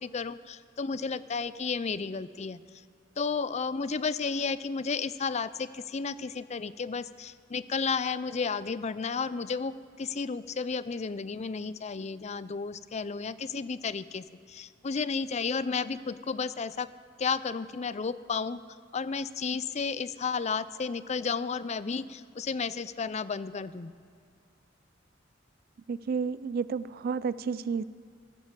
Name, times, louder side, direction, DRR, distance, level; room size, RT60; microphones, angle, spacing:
voice 1, 0.0-2.6 3.2-16.9 17.2-18.6 18.9-23.9, left 5 dB, 35° left, 16 dB, 0.5 m, -32 dB
voice 2, 25.9-27.8, right 5 dB, 50° right, 17 dB, 0.3 m, -31 dB
14.0 x 11.5 x 7.4 m, 2.3 s
head